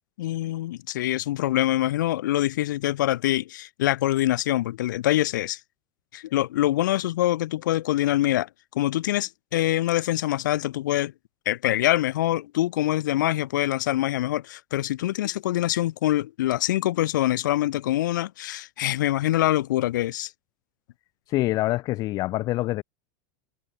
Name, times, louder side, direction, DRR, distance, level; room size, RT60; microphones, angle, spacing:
voice 1, 0.2-5.6 6.1-8.5 8.8-11.1 11.5-20.3, left 14 dB, 85° left, 5.0 m, -24 dB
voice 2, 21.3-22.8, left 17 dB, 40° left, 1.9 m, -25 dB
supercardioid pair, 155°, 10 cm